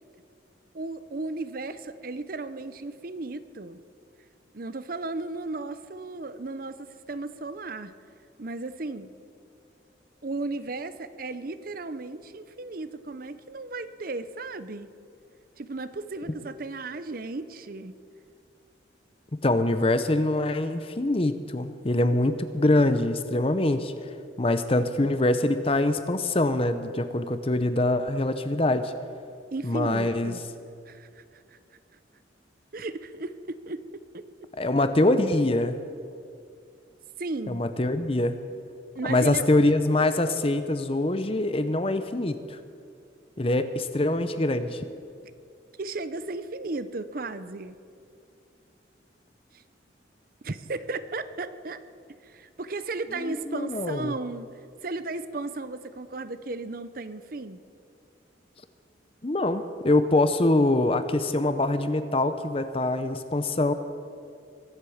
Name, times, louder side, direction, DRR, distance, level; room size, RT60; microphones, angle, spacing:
voice 1, 0.7-3.8 4.5-7.9 8.4-9.1 10.2-14.9 15.6-18.0 29.5-30.4 30.9-31.6 32.7-34.2 37.2-37.6 38.9-39.4 45.8-47.8 49.5-49.6 50.4-51.8 52.2-54.5 54.8-57.6, right 3 dB, 50° right, 13 dB, 0.6 m, -35 dB
voice 2, 19.3-23.9 24.4-28.9 29.6-30.3 34.6-35.8 37.5-38.4 39.0-42.6 43.4-44.8 53.2-54.1 59.2-63.7, left 2 dB, 30° left, 11 dB, 0.7 m, -24 dB
22.5 x 8.1 x 7.2 m, 2.4 s
head